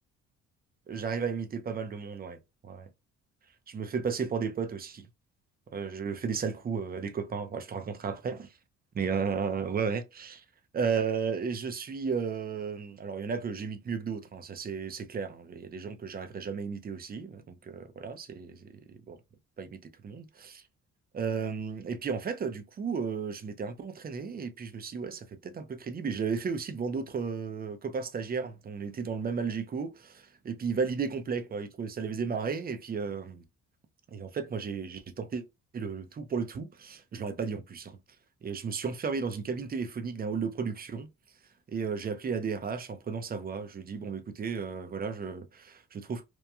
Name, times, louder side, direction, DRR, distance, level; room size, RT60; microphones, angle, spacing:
voice 1, 0.9-2.9 3.7-5.1 5.7-8.5 8.9-10.4 10.7-19.2 19.6-20.6 21.1-33.4 34.1-35.4 35.7-38.0 38.4-41.1 41.7-46.2, right 5 dB, 30° right, 0.5 m, -34 dB
3.0 x 2.1 x 2.3 m
cardioid pair, 90°, 30 cm